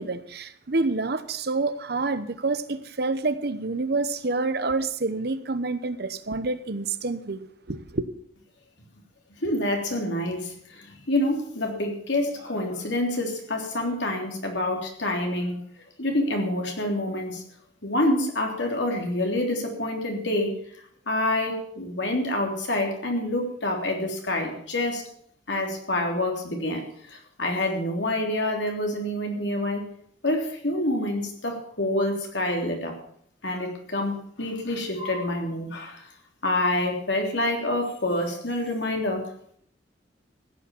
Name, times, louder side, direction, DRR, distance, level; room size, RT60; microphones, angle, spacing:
voice 1, 0.0-8.0, right 3 dB, 60° right, 1.0 m, -28 dB
voice 2, 9.4-15.5 16.0-17.4 17.8-20.5 21.1-25.0 25.5-26.8 27.1-29.8 30.2-32.9 33.4-36.0 36.4-39.3, left 1 dB, 75° left, 3.3 m, -27 dB
15.5 x 8.7 x 7.2 m
head